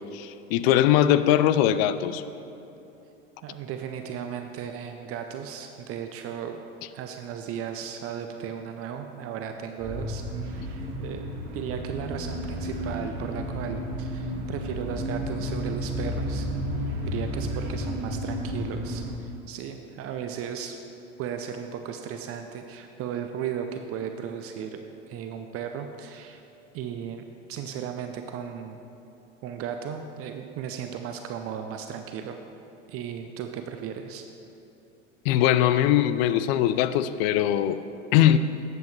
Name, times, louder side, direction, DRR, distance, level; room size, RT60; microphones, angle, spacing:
voice 1, 0.0-2.2 35.2-37.8 38.1-38.4, left 11 dB, 55° left, 13 dB, 0.5 m, -21 dB
voice 2, 3.4-6.6 6.9-16.7 17.1-20.8 21.2-24.8 25.1-26.4 26.7-28.8 29.4-32.4 32.9-34.2, right 8 dB, 40° right, 6 dB, 0.6 m, -36 dB
sound 1, 9.8-19.1, equal, 65° right, 1.9 m, -32 dB
12.5 x 7.9 x 3.2 m, 2.9 s
hypercardioid pair, 95°, 38 cm